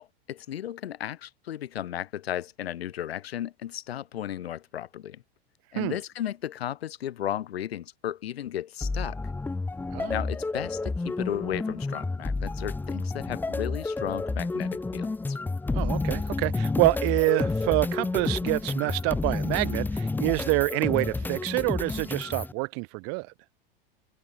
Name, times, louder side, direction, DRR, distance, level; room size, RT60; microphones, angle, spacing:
voice 1, 0.0-5.2 5.7-9.2 10.1-15.4, left 11 dB, 90° left, 5.0 m, -34 dB
sound 1, 8.8-22.5, left 3 dB, 5° left, 0.8 m, -30 dB
voice 2, 15.7-23.3, right 33 dB, 50° right, 7.6 m, -27 dB
supercardioid pair, 130°, 30 cm